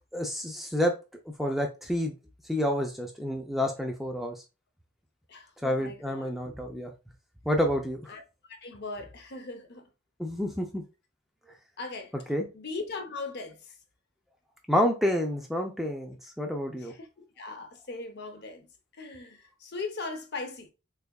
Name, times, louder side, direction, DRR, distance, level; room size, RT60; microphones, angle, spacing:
voice 1, 0.1-0.9 1.4-2.1 2.5-4.4 5.6-6.9 7.5-8.1 10.2-10.8 12.3-12.5 14.7-16.9, equal, ahead, 0.3 m, -29 dB
voice 2, 5.3-6.3 8.1-8.2 8.6-9.8 11.8-12.2 12.5-13.6 16.8-17.1 17.4-18.7 19.0-20.7, left 3 dB, 50° left, 0.7 m, -39 dB
3.6 x 3.3 x 2.2 m
head